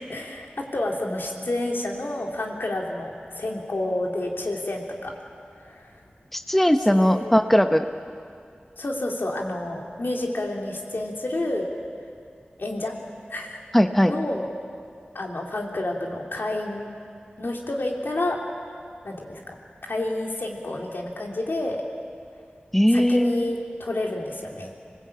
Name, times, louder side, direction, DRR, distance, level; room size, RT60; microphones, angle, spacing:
voice 1, 0.1-5.1 5.6-5.9 6.9-7.2 8.8-11.7 12.6-12.9 13.3-13.6 14.0-14.5 15.1-16.9 17.4-18.4 19.0-19.6 19.9-21.8 22.9-24.7, left 1 dB, 75° left, 0 dB, 3.5 m, -29 dB
voice 2, 6.3-7.9 13.7-14.1 22.7-23.5, equal, 5° left, 7 dB, 1.0 m, -19 dB
26.5 x 19.5 x 8.8 m, 2.3 s
wide cardioid pair, 60°, 4 cm